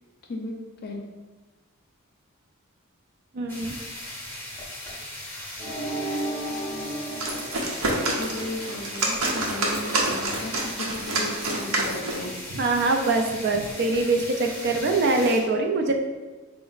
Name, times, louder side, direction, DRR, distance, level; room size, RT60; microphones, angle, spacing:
voice 1, 3.3-3.8 12.5-15.9, right 3 dB, 50° right, 4 dB, 0.4 m, -23 dB
sound 1, 3.5-15.4, left 1 dB, 10° left, 0.7 m, -38 dB
sound 2, 5.6-8.6, right 1 dB, 25° right, 0.7 m, -33 dB
sound 3, 7.0-12.3, right 2 dB, 80° right, 0.7 m, -28 dB
voice 2, 8.2-12.3, left 2 dB, 50° left, 2 dB, 0.5 m, -35 dB
4.2 x 2.0 x 3.9 m, 1.3 s
head